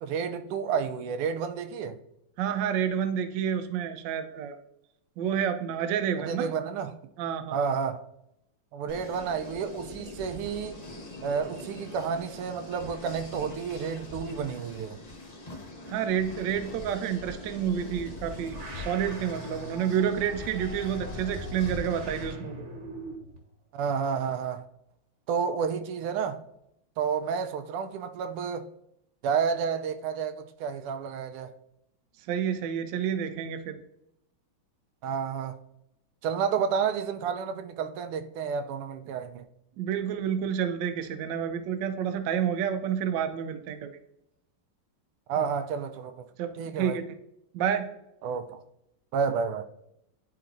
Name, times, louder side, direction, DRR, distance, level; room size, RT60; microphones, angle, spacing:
voice 1, 0.0-2.0 6.2-6.9 7.5-8.0 8.7-10.8 11.2-15.0 23.7-24.6 25.3-26.4 27.0-28.7 29.2-31.5 35.0-35.6 36.2-39.4 45.3-46.2 46.5-47.0 48.2-48.6 49.1-49.7, right 6 dB, 90° right, 1.5 m, -30 dB
voice 2, 2.4-4.6 5.2-6.5 7.2-7.7 15.9-22.6 32.3-33.8 39.8-44.0 46.4-47.0 47.5-47.9, right 8 dB, 70° right, 1.2 m, -29 dB
sound 1, 8.9-22.3, left 2 dB, 50° left, 0.4 m, -42 dB
sound 2, 17.8-23.4, right 1 dB, 40° right, 1.3 m, -43 dB
10.5 x 3.9 x 2.6 m
omnidirectional pair, 2.4 m